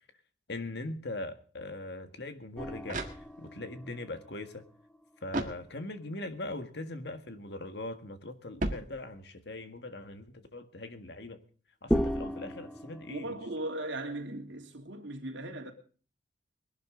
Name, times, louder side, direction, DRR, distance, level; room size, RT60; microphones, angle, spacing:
voice 1, 0.5-3.0 3.4-4.6 5.2-11.4 11.8-13.4, left 2 dB, 60° left, 1.8 m, -41 dB
sound 1, 2.4-3.7 5.3-6.2 8.6-9.5, right 1 dB, 40° right, 1.8 m, -37 dB
sound 2, 2.6-6.0 6.3-6.4 11.9-14.2, equal, ahead, 0.8 m, -36 dB
voice 2, 13.1-15.7, right 1 dB, 75° right, 2.9 m, -38 dB
21.0 x 12.0 x 3.8 m
head